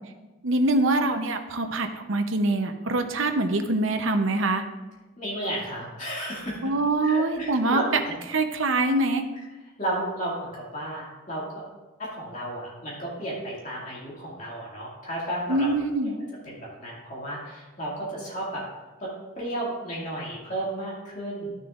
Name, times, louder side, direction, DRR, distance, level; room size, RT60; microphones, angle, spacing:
voice 1, 0.4-4.6 6.6-7.8 8.3-9.2 15.5-16.2, right 2 dB, 75° right, 6 dB, 0.8 m, -24 dB
voice 2, 5.2-6.7 7.0-8.2 9.8-11.6 12.0-15.7 16.0-16.1 16.4-18.6 19.0-19.1 19.4-21.6, right 1 dB, 35° left, -5 dB, 2.1 m, -33 dB
13.0 x 6.6 x 2.5 m, 1.2 s
head